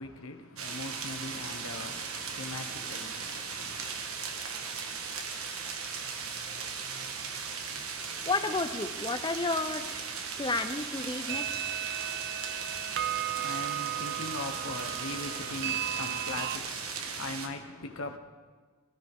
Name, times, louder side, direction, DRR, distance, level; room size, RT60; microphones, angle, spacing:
voice 1, 0.0-3.9 12.9-18.2, left 2 dB, 75° left, 1.1 m, -40 dB
sound 1, 0.6-17.5, right 5 dB, 90° right, 1.5 m, -38 dB
sound 2, 0.9-2.8 3.1-3.2 3.4-3.5 10.4-10.5 11.3-16.6, right 11 dB, 50° right, 0.3 m, -36 dB
voice 2, 8.3-10.0 10.4-11.7, left 3 dB, 20° left, 0.6 m, -32 dB
22.0 x 14.0 x 3.7 m
head